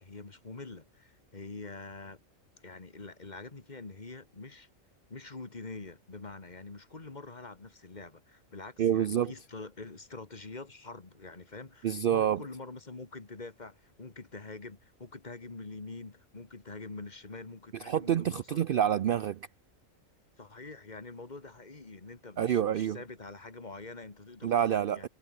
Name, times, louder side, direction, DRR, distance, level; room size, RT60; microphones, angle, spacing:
voice 1, 0.0-2.2 2.6-4.7 5.1-18.6 20.4-24.5 24.9-25.1, left 3 dB, 35° left, 1.8 m, -45 dB
voice 2, 8.8-9.3 11.8-12.4 17.8-19.5 22.4-23.0 24.4-25.1, right 10 dB, 60° right, 0.6 m, -27 dB
omnidirectional pair, 1.4 m